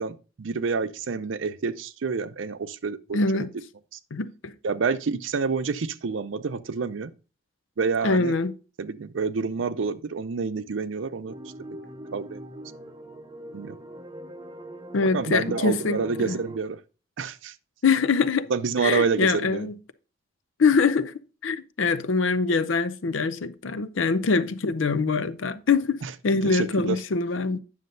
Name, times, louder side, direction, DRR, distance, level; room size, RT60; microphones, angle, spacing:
voice 1, 0.0-3.5 4.6-7.1 7.8-8.3 8.8-11.3 12.1-12.4 13.5-13.8 15.1-16.8 17.2-17.5 18.5-19.7 26.0-26.1 26.4-27.0, right 5 dB, 80° right, 0.5 m, -28 dB
voice 2, 3.1-3.5 4.1-4.5 8.0-8.5 14.9-16.0 16.2-16.3 17.8-18.5 18.8-19.7 20.6-21.1 21.4-27.6, left 4 dB, 80° left, 0.5 m, -24 dB
sound 1, 11.2-16.6, right 1 dB, 20° right, 0.5 m, -41 dB
9.3 x 6.6 x 2.6 m
head